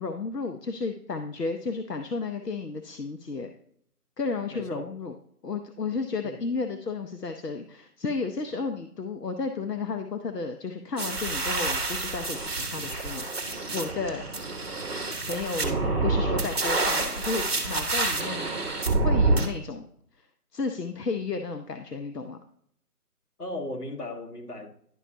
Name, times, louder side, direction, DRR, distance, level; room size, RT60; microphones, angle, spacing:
voice 1, 0.0-3.5 4.2-5.2 5.4-14.2 15.3-18.5 19.0-19.9 20.5-22.4, left 4 dB, 90° left, 0.8 m, -33 dB
voice 2, 4.5-4.8 6.2-6.4 23.4-24.7, left 2 dB, 75° left, 1.7 m, -36 dB
sound 1, 11.0-19.5, right 3 dB, 40° right, 1.2 m, -27 dB
11.0 x 5.5 x 2.7 m
figure-of-eight pair, 160°, 47 cm